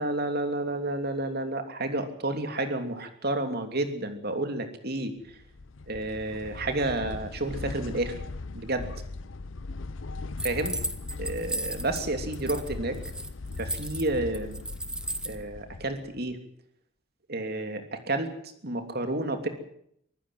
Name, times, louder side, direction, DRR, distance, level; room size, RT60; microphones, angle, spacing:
voice 1, 0.0-5.1 5.9-8.1 8.5-8.9 10.4-10.8 11.2-13.0 13.6-14.6 15.2-16.4 17.3-18.3 18.6-19.5, right 2 dB, 50° right, 7 dB, 3.1 m, -30 dB
sound 1, 5.3-16.3, left 3 dB, 70° left, 0.7 m, -39 dB
sound 2, 10.4-12.0 12.3-12.7 12.9-15.4, right 1 dB, 5° right, 1.2 m, -34 dB
24.5 x 15.0 x 7.8 m, 0.70 s
head